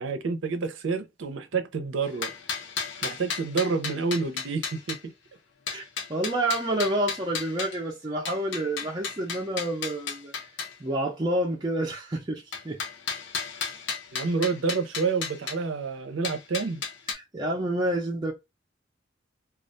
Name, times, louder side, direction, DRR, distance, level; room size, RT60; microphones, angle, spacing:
voice 1, 0.0-2.3 3.0-5.1 14.1-16.8, right 4 dB, 80° right, 0.5 m, -28 dB
sound 1, 2.0-5.0 5.7-7.8 8.3-10.7 12.5-15.6 16.2-17.1, left 5 dB, 65° left, 0.7 m, -34 dB
voice 2, 5.7-10.3 10.8-12.8 17.1-18.3, right 1 dB, 20° right, 0.4 m, -29 dB
2.3 x 2.1 x 2.5 m
head